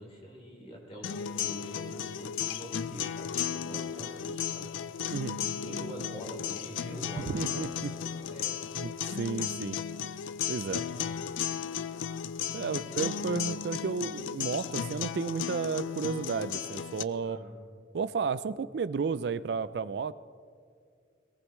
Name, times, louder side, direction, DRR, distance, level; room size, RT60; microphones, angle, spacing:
voice 1, 0.0-4.7 5.4-8.7 10.5-11.1 12.6-13.2 17.2-17.5, equal, 30° left, -2 dB, 3.6 m, -45 dB
sound 1, 1.0-17.0, left 8 dB, 90° left, 0.4 m, -35 dB
voice 2, 7.2-7.9 8.8-9.8 10.5-10.8 12.5-17.4 17.9-20.1, right 5 dB, 60° right, 16 dB, 0.4 m, -32 dB
22.0 x 18.5 x 3.1 m, 2.2 s
head